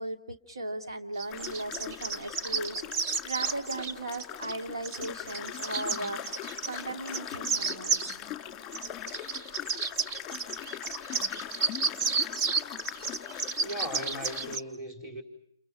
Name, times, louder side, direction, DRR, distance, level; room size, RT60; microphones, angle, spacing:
voice 1, 0.0-8.1, right 2 dB, 75° right, 3 dB, 2.7 m, -37 dB
sound 1, 1.2-4.5 4.8-6.8 7.1-8.2 8.7-14.6, right 5 dB, 30° right, 1.3 m, -31 dB
sound 2, 1.3-14.6, left 11 dB, 15° left, 2.4 m, -41 dB
voice 2, 13.6-15.2, equal, 10° right, 4 dB, 4.5 m, -38 dB
29.5 x 29.5 x 5.8 m, 0.72 s
figure-of-eight pair, 145°, 2 cm